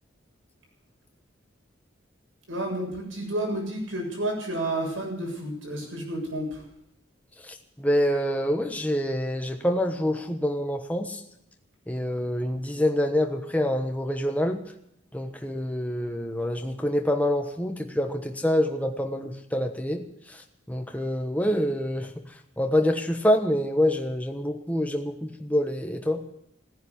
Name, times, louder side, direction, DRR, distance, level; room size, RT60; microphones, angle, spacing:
voice 1, 2.5-6.7, right 1 dB, 85° right, 0 dB, 7.4 m, -31 dB
voice 2, 7.5-11.2 11.9-14.6 15.1-20.0 20.7-22.1 22.6-26.2, left 1 dB, 10° left, 4 dB, 1.2 m, -26 dB
16.5 x 10.5 x 8.3 m, 0.76 s
head